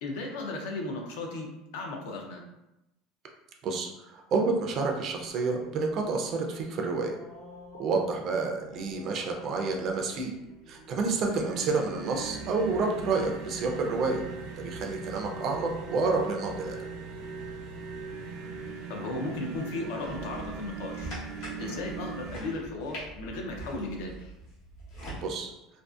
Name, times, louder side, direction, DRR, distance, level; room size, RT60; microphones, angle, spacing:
voice 1, 0.0-1.5 1.7-2.4 18.9-21.1 21.6-24.3, left 2 dB, 70° left, 1 dB, 0.5 m, -35 dB
voice 2, 3.6-7.2 7.8-10.3 10.7-14.2 14.6-16.8 21.6-21.8 25.2-25.5, right 4 dB, 35° right, 2 dB, 0.3 m, -29 dB
sound 1, 4.8-23.3, equal, 90° left, 1.3 m, -52 dB
sound 2, 11.2-22.4, right 4 dB, 85° right, 0.5 m, -40 dB
sound 3, 20.0-25.2, right 1 dB, 50° left, 1.0 m, -43 dB
2.5 x 2.4 x 2.3 m, 0.90 s
cardioid pair, 175°, 0 cm